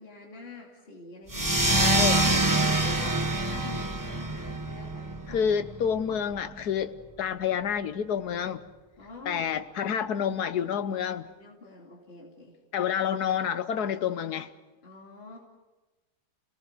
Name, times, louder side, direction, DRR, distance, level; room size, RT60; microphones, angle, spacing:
voice 1, 0.0-1.9 2.2-5.4 9.0-9.5 11.2-12.6 14.8-15.4, left 3 dB, 35° left, 3.1 m, -45 dB
sound 1, 1.3-6.4, right 2 dB, 15° right, 0.7 m, -26 dB
voice 2, 1.7-2.2 5.3-6.9 7.2-8.6 9.3-11.3 12.7-14.5, left 8 dB, 70° left, 1.4 m, -28 dB
30.0 x 18.5 x 6.6 m
omnidirectional pair, 1.8 m